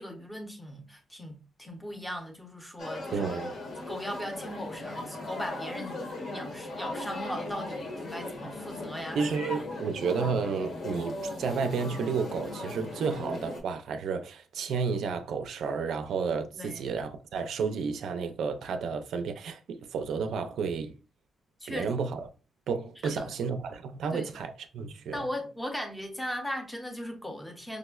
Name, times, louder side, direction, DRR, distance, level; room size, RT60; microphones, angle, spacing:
voice 1, 0.0-3.2 3.9-6.0 6.3-9.2 16.5-16.8 21.6-21.9 23.0-23.3 24.1-24.3 24.8-27.8, equal, 10° left, 0.7 m, -38 dB
sound 1, 2.8-13.6, left 2 dB, 60° left, 0.9 m, -38 dB
voice 2, 3.1-3.5 9.1-20.9 21.7-22.3 22.7-25.2, right 5 dB, 85° right, 0.4 m, -31 dB
4.9 x 2.0 x 2.3 m
wide cardioid pair, 145°, 0 cm